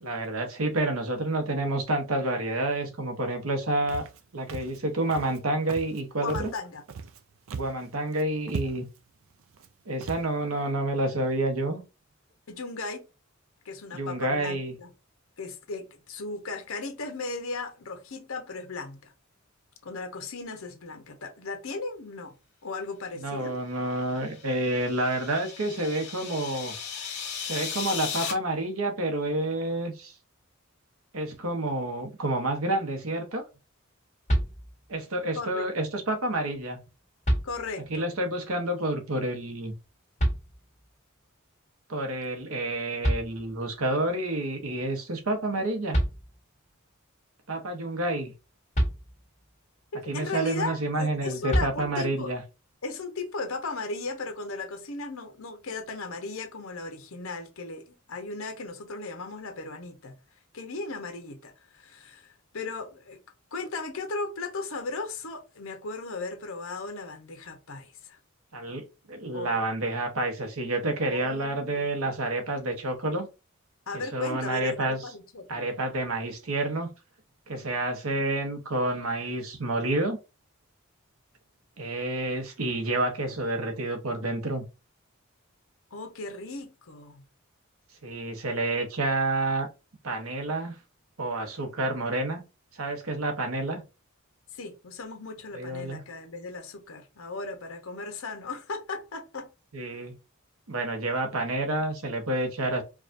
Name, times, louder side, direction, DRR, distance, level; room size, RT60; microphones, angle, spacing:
voice 1, 0.0-4.0 4.3-6.5 7.5-8.9 9.9-11.8 13.9-14.7 23.2-26.7 27.4-30.1 31.1-33.4 34.9-36.8 37.9-39.7 41.9-46.0 47.5-48.3 50.1-52.4 68.5-73.3 73.9-75.1 75.5-76.9 77.5-80.2 81.8-84.6 88.0-89.7 90.0-90.8 91.2-92.4 92.7-93.8 95.5-96.0 99.7-100.1 100.7-102.8, right 2 dB, 85° right, 1.0 m, -29 dB
Walk footsteps, 3.9-4.2 4.5-4.8 5.1-5.4 5.7-6.0 6.3-7.2 7.5-7.8 8.1-8.2 8.5-9.0 9.5-9.7 10.0-10.3, right 5 dB, 65° right, 0.4 m, -37 dB
voice 2, 6.2-6.8 12.5-13.0 13.6-14.9 15.4-19.1 19.8-22.3 22.6-23.5 35.3-35.6 37.4-38.0 50.0-52.3 52.8-60.1 60.5-63.2 63.5-68.2 69.3-69.6 71.0-71.8 73.9-75.7 85.9-87.2 94.5-99.5, left 3 dB, 75° left, 0.9 m, -36 dB
sound 1, 24.2-28.3, left 7 dB, 60° left, 1.3 m, -36 dB
sound 2, 34.3-35.0 36.5-36.6 37.2-38.0 40.2-40.9 42.7-42.8 43.0-43.9 45.6-45.7 45.9-46.7 48.7-49.6 51.5-52.3, equal, 35° left, 1.5 m, -29 dB
4.8 x 2.4 x 2.5 m
head